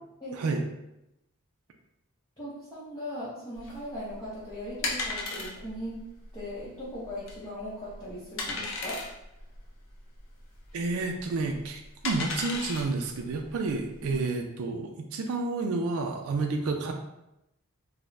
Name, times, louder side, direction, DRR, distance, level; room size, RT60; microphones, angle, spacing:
voice 1, 0.3-0.6 10.7-16.9, right 3 dB, 70° right, 3 dB, 0.3 m, -30 dB
voice 2, 2.4-6.0 6.3-9.0 14.0-14.2, equal, 15° left, -11 dB, 0.6 m, -39 dB
sound 1, 3.6-14.2, left 3 dB, 60° left, 0.5 m, -37 dB
2.4 x 2.0 x 3.1 m, 0.88 s
head